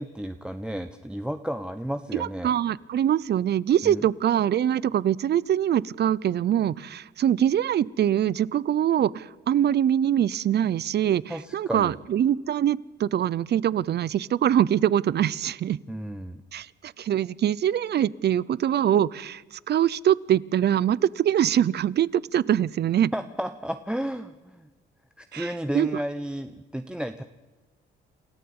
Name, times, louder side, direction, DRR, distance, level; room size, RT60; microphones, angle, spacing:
voice 1, 0.0-2.5 3.8-4.1 11.3-12.0 15.9-16.4 23.1-24.7 25.2-27.2, equal, 5° right, 9 dB, 1.0 m, -32 dB
voice 2, 2.1-15.8 16.5-23.1 25.3-25.9, right 10 dB, 55° right, 22 dB, 0.7 m, -23 dB
27.5 x 14.0 x 8.8 m, 1.2 s
cardioid pair, 90°, 20 cm